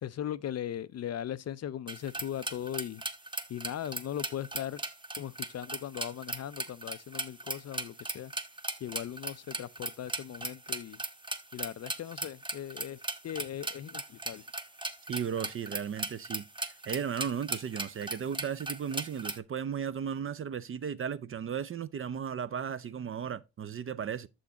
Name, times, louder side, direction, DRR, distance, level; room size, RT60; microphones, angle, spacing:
voice 1, 0.0-3.0 3.5-4.8 5.2-8.3 8.8-11.0 11.5-14.4, left 10 dB, 40° left, 0.4 m, -38 dB
sound 1, 1.9-19.4, right 2 dB, 10° right, 0.8 m, -38 dB
voice 2, 15.1-24.3, right 7 dB, 35° right, 0.4 m, -35 dB
6.9 x 6.2 x 2.8 m
supercardioid pair, 60°, 39 cm